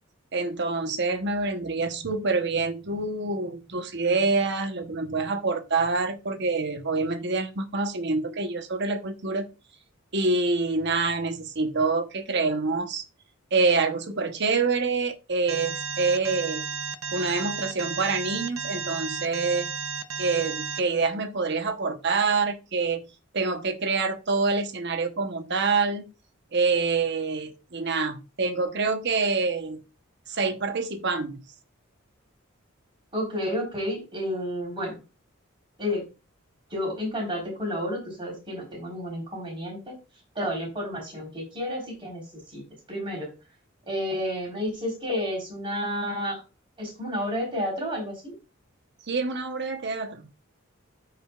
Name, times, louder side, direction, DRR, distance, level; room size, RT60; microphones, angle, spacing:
voice 1, 0.3-9.5 10.1-13.0 13.5-16.6 17.1-19.7 20.2-23.0 23.3-26.0 26.5-29.8 30.3-31.4 49.1-50.3, right 4 dB, 55° right, 7 dB, 1.1 m, -26 dB
Alarm, 15.5-20.8, right 6 dB, 90° right, 0.8 m, -33 dB
voice 2, 33.1-35.0 35.8-36.0 36.7-40.0 40.3-42.6 42.9-43.3 43.9-46.4 46.8-48.3, equal, 25° right, -1 dB, 4.2 m, -31 dB
13.5 x 5.1 x 2.4 m, 0.29 s
head